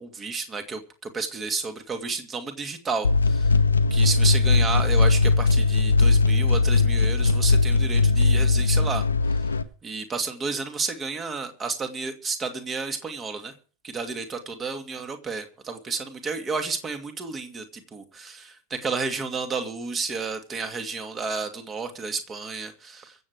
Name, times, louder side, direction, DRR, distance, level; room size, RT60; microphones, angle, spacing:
voice 1, 0.0-3.5 3.9-9.0 9.8-13.5 13.8-23.1, right 4 dB, 20° right, 7 dB, 2.4 m, -31 dB
sound 1, 3.0-9.6, left 3 dB, 75° left, 1.0 m, -20 dB
23.5 x 8.1 x 4.8 m, 0.40 s
figure-of-eight pair, 90°, 0 cm